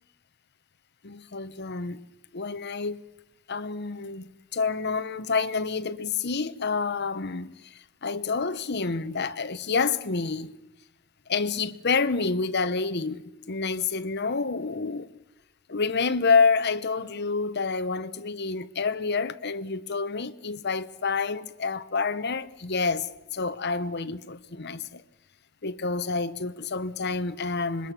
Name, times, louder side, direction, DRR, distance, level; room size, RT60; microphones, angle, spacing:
voice 1, 1.0-2.0 2.3-3.0 3.5-10.5 11.3-15.1 15.7-25.0 25.6-27.9, left 4 dB, 55° left, 1.0 m, -28 dB
26.5 x 22.0 x 6.1 m
head